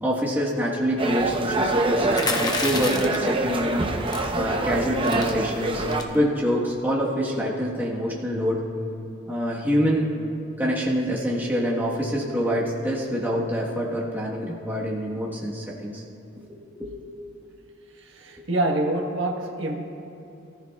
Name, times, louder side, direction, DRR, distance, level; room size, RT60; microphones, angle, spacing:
voice 1, 0.0-3.8 4.3-5.8 6.1-8.6 9.3-10.1 10.6-16.0 16.4-16.5 16.8-16.9, equal, 10° right, -6 dB, 1.3 m, -26 dB
sound 1, 1.0-6.0, right 2 dB, 25° right, 0.7 m, -25 dB
sound 2, 2.1-3.3 4.1-4.4 4.7-4.8 5.0-5.3 5.9-6.2, left 3 dB, 20° left, 0.9 m, -28 dB
voice 2, 18.0-19.8, right 1 dB, 75° right, 1 dB, 1.3 m, -26 dB
23.0 x 13.5 x 2.4 m, 2.8 s
head